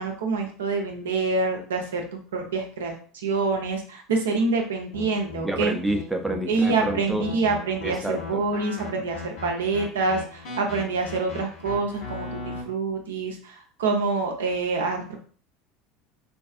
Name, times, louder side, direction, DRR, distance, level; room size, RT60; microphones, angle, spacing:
voice 1, 0.0-5.7 6.4-15.2, right 3 dB, 75° right, 2 dB, 0.5 m, -26 dB
sound 1, 4.9-12.6, left 4 dB, 65° left, 0.9 m, -37 dB
voice 2, 5.4-7.2 7.8-8.2, right 1 dB, 5° right, 3 dB, 0.5 m, -28 dB
2.5 x 2.3 x 2.4 m, 0.43 s
hypercardioid pair, 75°, 0 cm